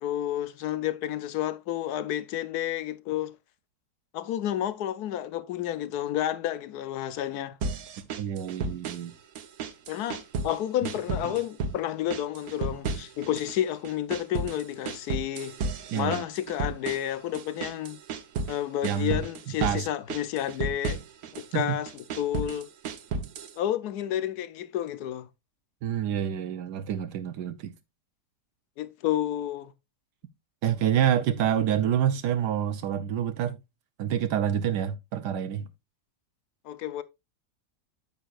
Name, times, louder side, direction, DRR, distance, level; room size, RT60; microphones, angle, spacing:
voice 1, 0.0-3.3 4.1-7.6 9.9-15.6 15.9-18.0 18.5-21.0 21.3-21.9 22.2-22.7 23.6-25.3 28.8-29.7 36.6-37.0, left 11 dB, 70° left, 1.3 m, -30 dB
sound 1, 7.6-9.1 9.4-10.6 10.8-11.8 12.1-13.6 13.8-18.6 18.8-19.8 20.1-21.5 21.9-23.6, right 4 dB, 65° right, 1.4 m, -33 dB
voice 2, 8.0-9.1 11.2-11.4 15.9-16.2 18.8-19.2 19.6-19.9 21.5-21.8 25.8-27.7 30.6-33.6 34.0-35.7, right 9 dB, 85° right, 1.3 m, -27 dB
9.1 x 8.4 x 2.4 m
omnidirectional pair, 1.7 m